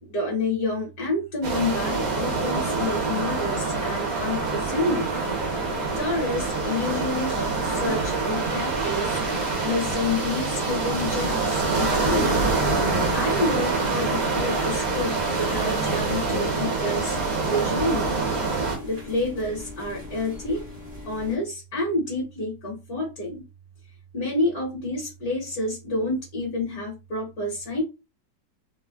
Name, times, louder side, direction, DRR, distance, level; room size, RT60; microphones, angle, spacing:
voice 1, 0.0-5.2 5.9-9.2 9.6-12.4 13.1-17.2 17.4-18.2 18.8-20.6 21.0-23.4 24.1-27.8, left 2 dB, 60° left, -1 dB, 1.3 m, -28 dB
sound 1, 1.4-18.8, right 3 dB, 60° right, 1.2 m, -25 dB
sound 2, 5.2-21.4, left 2 dB, 20° right, 0.6 m, -40 dB
3.2 x 2.0 x 2.2 m, 0.27 s
omnidirectional pair, 1.9 m